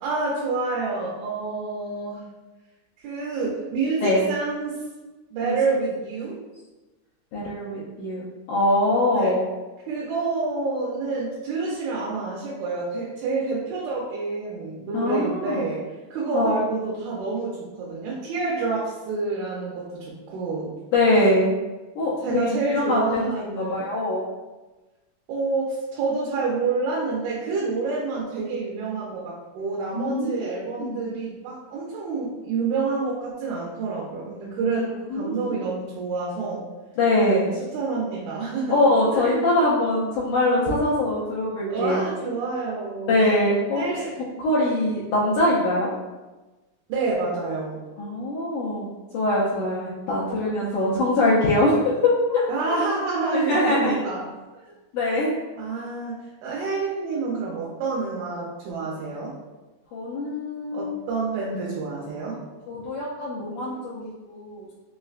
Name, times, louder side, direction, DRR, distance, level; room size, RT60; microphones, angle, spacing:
voice 1, 0.0-2.2 3.0-4.8 5.3-6.4 9.1-9.4 9.9-15.8 16.1-20.8 22.2-23.9 25.3-36.6 37.2-37.5 37.7-39.5 41.7-43.2 43.8-44.2 46.9-47.8 50.6-51.1 52.5-54.2 54.6-54.7 55.6-56.2 56.4-59.3 60.7-62.4, right 3 dB, 80° right, -4 dB, 2.2 m, -28 dB
voice 2, 7.3-9.4 14.9-15.7 16.3-16.5 20.9-21.5 22.0-24.2 30.0-31.1 34.6-35.6 37.0-37.4 38.7-42.0 43.1-43.9 44.4-45.9 48.0-52.4 53.3-54.0 54.9-55.3 59.9-61.0 62.7-64.7, left 1 dB, 80° left, -7 dB, 1.9 m, -23 dB
5.4 x 2.1 x 2.4 m, 1.1 s
omnidirectional pair, 4.0 m